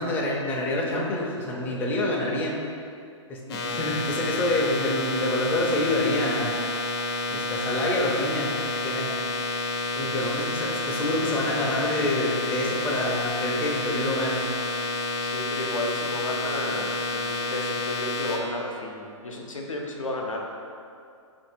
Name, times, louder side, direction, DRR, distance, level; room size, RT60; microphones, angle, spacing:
voice 1, 0.0-2.6 3.3-6.6 7.3-8.5 8.8-9.2 10.0-14.5, left 1 dB, 10° left, -3 dB, 0.4 m, -27 dB
sound 1, 3.5-18.4, left 2 dB, 50° left, 0.7 m, -29 dB
voice 2, 15.2-20.5, left 1 dB, 85° left, 0 dB, 0.6 m, -33 dB
2.9 x 2.6 x 4.3 m, 2.4 s
figure-of-eight pair, 120°, 16 cm